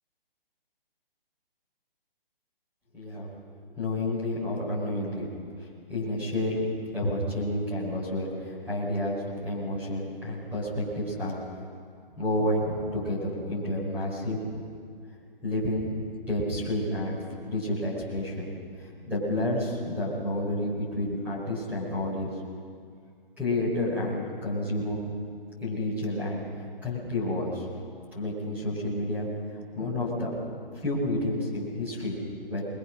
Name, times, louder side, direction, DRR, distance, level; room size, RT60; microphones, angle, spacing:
voice 1, 2.9-3.4 3.7-5.3 5.9-11.4 12.2-14.6 15.4-17.2 17.5-18.5 18.8-22.3 23.4-25.0 25.6-27.7 28.1-29.3 29.7-30.3 30.8-32.2 32.5-32.7, left 1 dB, 5° right, -7 dB, 5.2 m, -30 dB
25.5 x 22.0 x 6.3 m, 2.3 s
hypercardioid pair, 165°, 29 cm